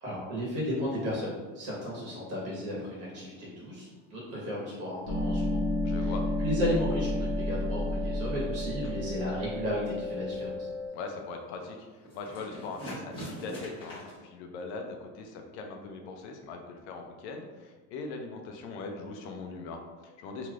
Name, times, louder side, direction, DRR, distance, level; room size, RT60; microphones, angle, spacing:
voice 1, 0.0-6.1 6.4-10.7, equal, 45° right, -6 dB, 1.4 m, -34 dB
sound 1, 1.4-5.3 5.6-14.2, right 1 dB, 15° left, 1.0 m, -47 dB
sound 2, 5.1-10.9, left 1 dB, 50° left, 1.1 m, -31 dB
voice 2, 5.8-6.2 8.8-8.9 10.9-20.5, left 3 dB, 85° left, 3 dB, 0.6 m, -41 dB
3.2 x 2.9 x 2.4 m, 1.3 s
cardioid pair, 160°, 33 cm